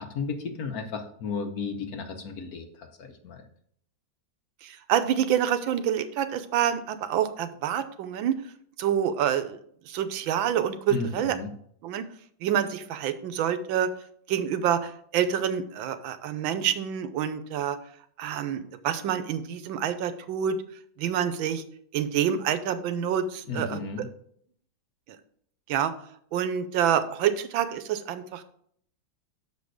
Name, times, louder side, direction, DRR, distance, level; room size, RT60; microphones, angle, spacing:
voice 1, 0.0-3.4 10.9-11.5 23.5-24.1, left 4 dB, 55° left, 6 dB, 1.2 m, -34 dB
voice 2, 4.6-8.4 8.8-9.6 9.9-11.4 11.8-12.0 12.4-13.9 14.3-17.8 18.2-20.6 21.0-21.6 21.9-23.8 25.7-25.9 26.3-28.4, right 9 dB, 85° right, 11 dB, 1.5 m, -27 dB
6.7 x 5.3 x 6.4 m, 0.65 s
omnidirectional pair, 2.1 m